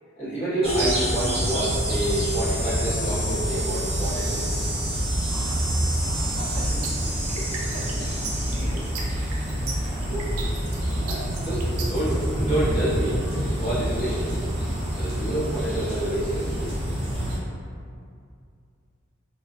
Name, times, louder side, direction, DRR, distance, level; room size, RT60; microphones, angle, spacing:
voice 1, 0.2-4.5 7.3-7.4 9.5-9.7 10.1-10.2 10.9-14.4 15.0-16.7, right 1 dB, 30° left, -14 dB, 1.0 m, -28 dB
sound 1, 0.6-17.4, equal, 30° right, 0.5 m, -27 dB
voice 2, 5.3-7.0 7.3-9.0 9.3-10.4, equal, 70° left, -11 dB, 0.7 m, -42 dB
sound 2, 6.5-12.1, right 4 dB, 90° right, 0.4 m, -36 dB
2.4 x 2.3 x 2.2 m, 2.3 s
head